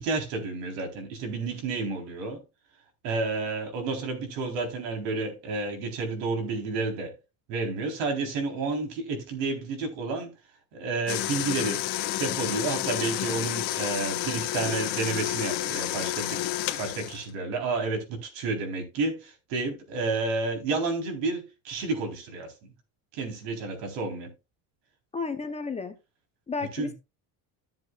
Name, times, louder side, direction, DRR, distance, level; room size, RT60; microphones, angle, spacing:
voice 1, 0.0-2.4 3.0-7.2 7.5-10.3 10.7-11.9 12.2-16.5 16.8-22.5 23.1-24.3 26.7-26.9, right 3 dB, 75° right, 4.0 m, -30 dB
sound 1, 11.1-17.3, left 15 dB, 60° left, 1.4 m, -30 dB
voice 2, 25.1-25.9 26.5-26.9, left 4 dB, 15° left, 0.7 m, -32 dB
13.5 x 7.7 x 2.4 m
cardioid pair, 160°, 45 cm